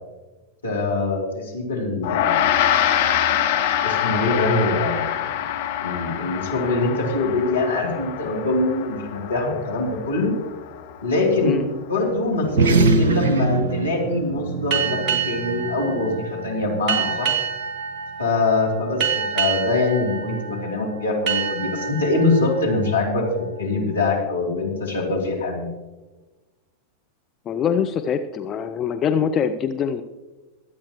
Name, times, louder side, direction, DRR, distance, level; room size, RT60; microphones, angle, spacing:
voice 1, 0.6-2.7 3.8-5.1 5.8-10.4 11.0-11.6 11.9-17.3 18.2-25.7, left 2 dB, 75° left, -2 dB, 3.0 m, -23 dB
Gong, 2.0-11.6, left 10 dB, 55° left, 1.4 m, -25 dB
sound 1, 12.4-17.2, right 3 dB, 60° right, 1.0 m, -23 dB
sound 2, 14.7-24.0, right 7 dB, 35° right, 2.0 m, -28 dB
voice 2, 27.5-30.0, left 7 dB, 30° left, 8 dB, 0.6 m, -23 dB
23.5 x 8.7 x 3.0 m, 1.2 s
figure-of-eight pair, 90°, 0 cm